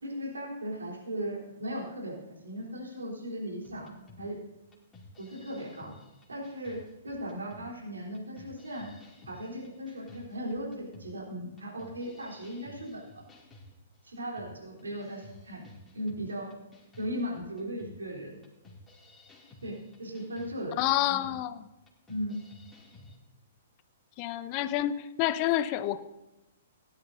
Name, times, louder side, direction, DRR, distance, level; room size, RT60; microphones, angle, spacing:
voice 1, 0.0-4.4 5.2-5.9 6.3-8.9 9.3-13.2 14.0-15.6 15.9-16.5 17.0-18.4 19.6-20.8 21.1-21.2 22.1-22.4, equal, 80° right, -2 dB, 3.7 m, -37 dB
sound 1, 3.6-23.2, left 2 dB, 15° left, 2.6 m, -54 dB
voice 2, 20.8-21.6 24.2-26.0, left 13 dB, 35° left, 14 dB, 0.6 m, -28 dB
17.0 x 11.0 x 2.7 m, 0.96 s
figure-of-eight pair, 115°, 0 cm